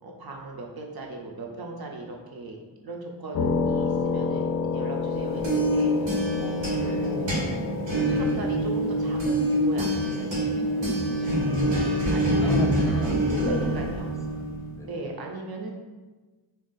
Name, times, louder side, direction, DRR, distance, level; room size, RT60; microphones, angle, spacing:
voice 1, 0.0-2.6 2.8-4.5 4.7-7.5 8.1-11.8 12.1-12.6 13.4-14.1 14.8-15.7, right 2 dB, 60° right, 0 dB, 0.6 m, -37 dB
sound 1, 3.3-13.6, left 5 dB, 55° left, 0.5 m, -32 dB
sound 2, 5.1-14.8, right 1 dB, 90° right, 0.9 m, -26 dB
voice 2, 6.7-7.1 11.6-12.0 12.4-13.8 14.3-15.0, right 1 dB, 5° left, -1 dB, 0.5 m, -37 dB
2.6 x 2.3 x 3.8 m, 1.3 s
cardioid pair, 50°, 44 cm